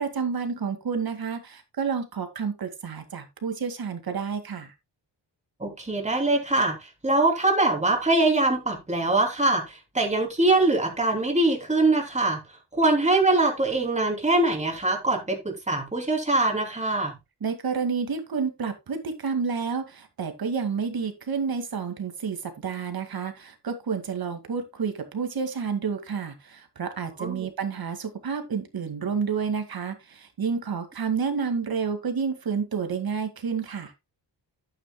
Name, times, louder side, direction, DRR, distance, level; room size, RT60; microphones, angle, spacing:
voice 1, 0.0-4.7 17.4-33.9, right 6 dB, 55° right, 2.1 m, -30 dB
voice 2, 5.6-12.4 12.7-17.1 27.2-27.5, right 2 dB, 15° right, 2.9 m, -23 dB
11.0 x 9.1 x 2.2 m
wide cardioid pair, 120°, 42 cm